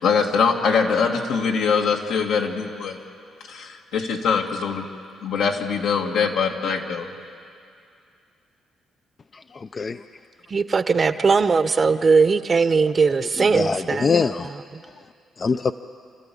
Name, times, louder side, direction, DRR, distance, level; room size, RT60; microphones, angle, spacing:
voice 1, 0.0-3.0 3.5-4.9 5.2-7.1, left 5 dB, 80° left, 1 dB, 2.2 m, -22 dB
voice 2, 9.3-10.0 13.4-14.5 15.4-15.7, left 5 dB, 35° left, 9 dB, 0.5 m, -24 dB
voice 3, 10.5-14.1 14.7-14.8, right 4 dB, 35° right, 12 dB, 0.8 m, -19 dB
29.0 x 13.5 x 8.6 m, 2.4 s
cardioid pair, 90°, 0 cm